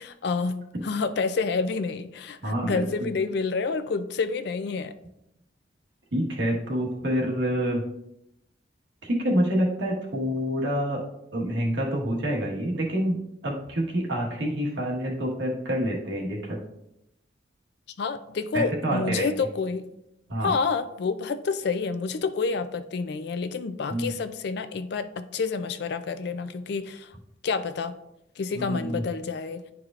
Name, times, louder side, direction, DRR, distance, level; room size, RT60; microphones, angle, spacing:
voice 1, 0.0-4.9 18.0-19.8 20.4-27.1 27.4-27.9 28.4-29.6, left 4 dB, 60° left, 11 dB, 0.4 m, -28 dB
voice 2, 2.4-3.1 6.1-7.8 9.0-11.0 11.3-16.6 18.5-19.4 20.3-20.5 23.9-24.1 28.5-29.0, equal, 80° right, -2 dB, 1.4 m, -27 dB
10.0 x 4.7 x 2.4 m, 0.84 s
head